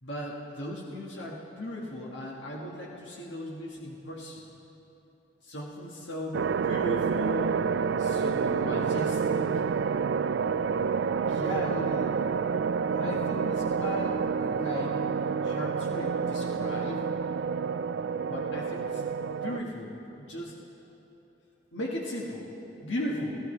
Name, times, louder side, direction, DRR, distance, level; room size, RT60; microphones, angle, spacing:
voice 1, 0.0-4.5 5.4-7.6 7.9-9.6 11.3-12.2 12.8-15.0 15.4-17.1 18.3-19.0 19.4-20.6 21.7-22.5 22.8-23.3, left 1 dB, 90° left, -3 dB, 1.7 m, -37 dB
sound 1, 6.3-19.6, right 6 dB, 70° right, 0.3 m, -28 dB
28.5 x 12.5 x 3.3 m, 3.0 s
head